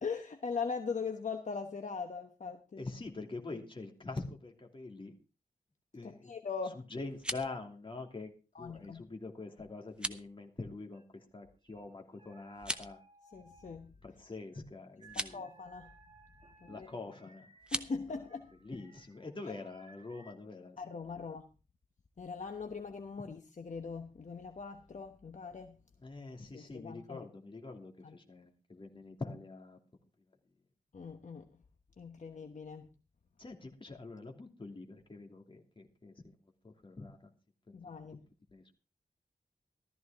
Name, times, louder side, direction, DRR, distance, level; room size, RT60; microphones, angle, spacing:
voice 1, 0.0-2.8 6.0-6.8 8.5-9.0 13.3-13.9 15.3-15.9 16.6-16.9 17.7-18.5 20.8-21.5 22.2-25.8 26.5-27.3 28.0-28.2 30.9-31.5 32.0-32.9 37.7-38.2, left 5 dB, 55° left, 5 dB, 1.2 m, -41 dB
voice 2, 2.8-5.1 5.9-6.3 6.7-8.3 8.6-13.0 14.0-15.4 16.7-17.5 18.6-20.8 26.0-29.8 33.4-36.3 36.6-37.2 38.5-38.6, left 3 dB, 35° left, 3 dB, 2.8 m, -45 dB
sound 1, 7.0-7.6 9.9-10.3 12.5-13.0 15.0-15.4 17.6-17.9, right 1 dB, 5° right, 1.0 m, -38 dB
sound 2, 10.9-11.9 12.1-14.2 14.4-20.3, right 3 dB, 35° right, 2.5 m, -62 dB
14.5 x 13.5 x 3.6 m, 0.33 s
wide cardioid pair, 115°, 15 cm